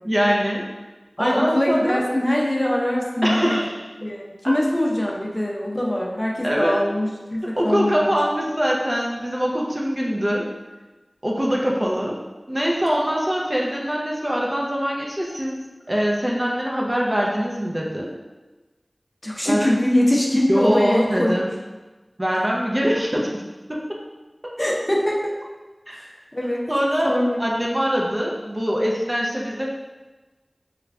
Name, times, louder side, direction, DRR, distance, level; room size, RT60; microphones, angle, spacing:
voice 1, 0.0-0.7 1.2-2.1 3.2-3.8 6.4-6.8 7.4-10.5 11.2-12.2 12.5-18.1 19.5-19.7 20.5-21.5 22.2-23.3 23.7-24.0 24.4-24.6 25.9-26.0 26.7-27.1 27.4-29.6, equal, 30° right, -3 dB, 0.5 m, -23 dB
voice 2, 1.2-3.6 4.0-8.2 19.2-21.4 24.6-25.3 25.9-26.6 27.0-27.4, left 1 dB, 25° left, -3 dB, 0.6 m, -23 dB
3.1 x 2.4 x 3.4 m, 1.2 s
wide cardioid pair, 40°, 0 cm